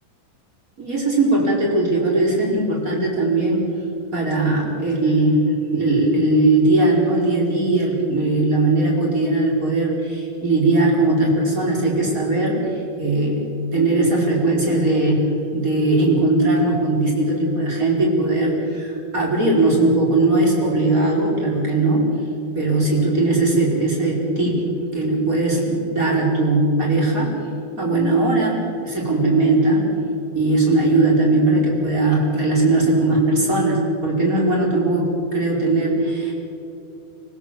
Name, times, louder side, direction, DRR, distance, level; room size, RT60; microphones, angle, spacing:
voice 1, 0.8-3.7 4.1-13.5 13.7-15.2 15.5-22.1 22.5-24.6 24.9-27.4 27.8-29.9 30.3-36.3, right 2 dB, 20° right, -2 dB, 4.7 m, -19 dB
25.5 x 17.5 x 7.6 m, 2.7 s
omnidirectional pair, 4.9 m